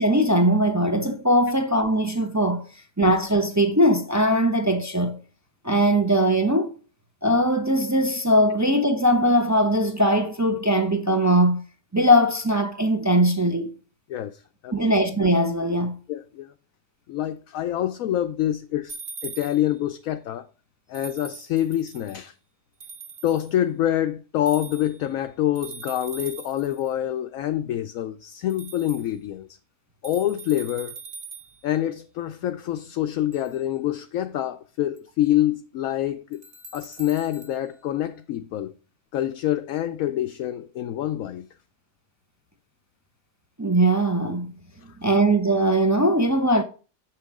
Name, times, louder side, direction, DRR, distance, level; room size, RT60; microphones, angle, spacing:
voice 1, 0.0-2.6 3.0-5.2 5.6-6.7 7.2-11.6 11.9-13.7 14.7-16.0 43.6-44.5 45.0-46.6, equal, 20° right, 0.4 m, -20 dB
voice 2, 14.1-14.7 16.1-16.5 17.1-19.0 19.2-20.5 20.9-22.3 23.2-29.5 30.0-31.0 31.6-36.4 36.7-38.7 39.1-41.5, left 12 dB, 70° left, 0.9 m, -26 dB
sound 1, 18.9-19.8 20.9-22.2 22.8-23.5 24.5-25.1 25.5-26.9 28.5-29.1 30.0-31.6 33.3-33.5 35.0-35.1 36.3-37.6, right 5 dB, 40° right, 1.2 m, -41 dB
7.5 x 5.9 x 4.7 m
omnidirectional pair, 1.7 m